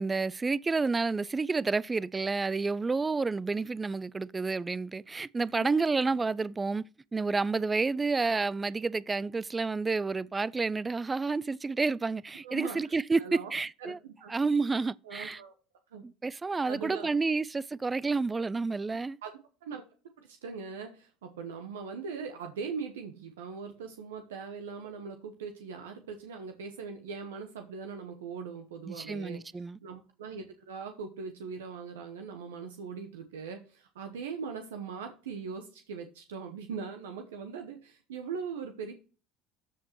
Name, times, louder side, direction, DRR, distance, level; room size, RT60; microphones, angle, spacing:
voice 1, 0.0-6.9 7.1-14.0 14.3-15.4 16.0-19.2 28.9-29.8, right 4 dB, 20° right, 0.4 m, -30 dB
voice 2, 12.4-12.8 13.2-13.5 13.8-14.3 15.0-15.5 15.9-16.0 16.7-17.1 19.2-19.3 19.6-19.8 20.2-29.4 29.8-38.9, right 5 dB, 85° right, 1.0 m, -40 dB
13.0 x 5.0 x 3.0 m
hypercardioid pair, 70°, 0 cm